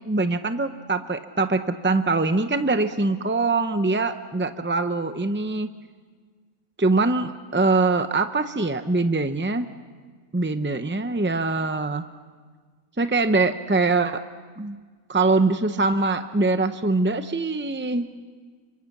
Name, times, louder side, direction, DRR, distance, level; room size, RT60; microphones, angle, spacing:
voice 1, 0.0-5.7 6.8-9.7 10.3-12.0 13.0-14.2 14.6-14.8 15.1-18.1, right 3 dB, 20° right, 9 dB, 0.3 m, -23 dB
28.5 x 25.5 x 7.2 m, 1.5 s
omnidirectional pair, 1.4 m